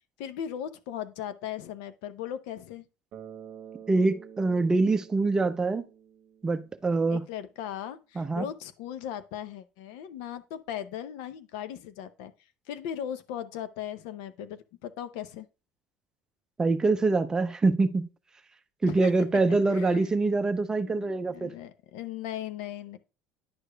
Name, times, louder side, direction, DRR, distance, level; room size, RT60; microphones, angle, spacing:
voice 1, 0.2-2.9 7.1-12.3 12.7-15.5 18.8-19.1 19.5-20.1 20.7-23.0, left 10 dB, 85° left, 0.6 m, -38 dB
Bass guitar, 3.1-7.1, right 8 dB, 50° right, 0.9 m, -48 dB
voice 2, 3.9-5.8 6.4-7.2 8.2-8.4 16.6-18.1 18.8-21.5, right 3 dB, 15° right, 0.5 m, -25 dB
10.0 x 4.9 x 2.2 m
cardioid pair, 135°, 4 cm